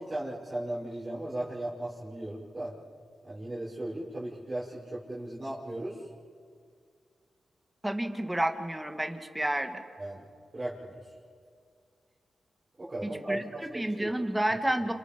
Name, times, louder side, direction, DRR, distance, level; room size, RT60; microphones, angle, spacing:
voice 1, 0.0-2.7 3.2-6.0 10.0-10.3 10.5-11.0 12.8-14.1, right 1 dB, 30° right, -9 dB, 6.2 m, -36 dB
voice 2, 7.8-9.8 13.3-14.9, right 1 dB, 10° right, 6 dB, 2.4 m, -30 dB
30.0 x 27.0 x 5.5 m, 2.2 s
cardioid pair, 50°, 0 cm